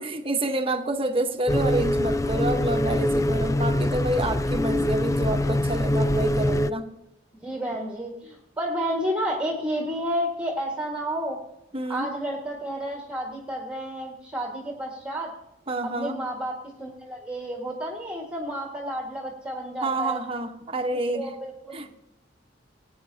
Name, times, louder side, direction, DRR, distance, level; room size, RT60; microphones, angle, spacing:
voice 1, 0.0-6.9 11.7-12.1 15.7-16.2 19.8-21.3 21.7-22.0, right 2 dB, 30° right, 6 dB, 1.1 m, -28 dB
sound 1, 1.5-6.7, left 1 dB, 15° left, 0.4 m, -24 dB
voice 2, 7.4-11.4 11.9-15.3 16.0-16.5 16.8-20.2 21.1-21.9, equal, 5° right, -2 dB, 1.8 m, -31 dB
19.0 x 9.5 x 2.8 m, 0.91 s
head